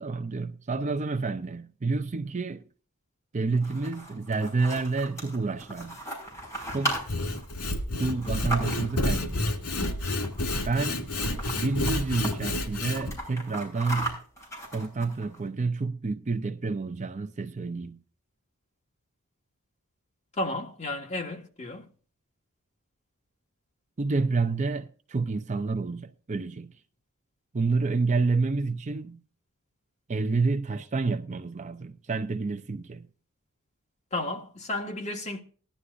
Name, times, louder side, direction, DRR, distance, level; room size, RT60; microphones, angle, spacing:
voice 1, 0.0-2.6 3.3-6.0 6.7-7.0 8.0-9.4 10.7-11.1 11.5-14.2 14.7-18.0 24.0-26.7 27.5-29.2 30.1-33.1, right 3 dB, 30° right, 0.5 m, -29 dB
sound 1, 3.5-9.1 10.1-10.6 10.9-11.0 11.2-12.3 12.7-15.4, right 1 dB, 15° left, 5.8 m, -36 dB
Sawing / Wood, 6.9-13.2, left 2 dB, 90° left, 2.1 m, -30 dB
voice 2, 20.4-21.9 34.1-35.4, left 2 dB, 30° left, 1.6 m, -33 dB
19.5 x 11.5 x 2.5 m
head